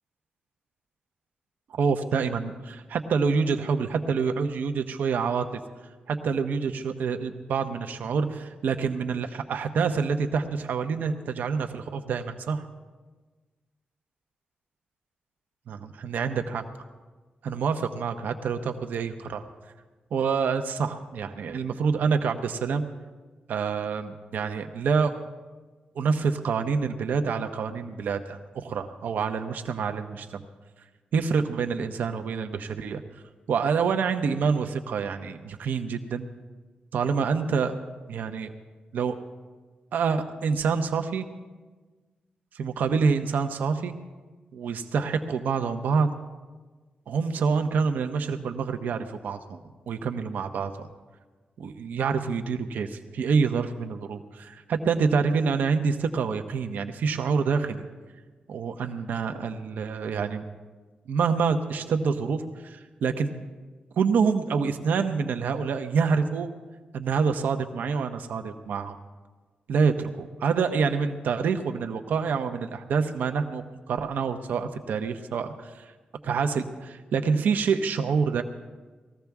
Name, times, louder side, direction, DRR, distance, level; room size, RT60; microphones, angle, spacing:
voice 1, 1.7-5.6 6.1-12.6 15.7-16.6 17.4-19.4 20.1-22.8 23.5-25.1 25.9-30.3 31.1-33.0 33.5-36.3 36.9-37.8 38.1-38.5 38.9-39.2 39.9-41.3 42.5-44.0 44.5-46.1 47.1-49.6 49.9-50.9 51.6-57.9 58.5-60.4 61.1-63.3 64.0-66.5 66.9-69.0 69.7-75.8 76.2-78.4, right 5 dB, 85° right, 7 dB, 0.8 m, -27 dB
19.5 x 14.5 x 3.5 m, 1.3 s
wide cardioid pair, 150°, 3 cm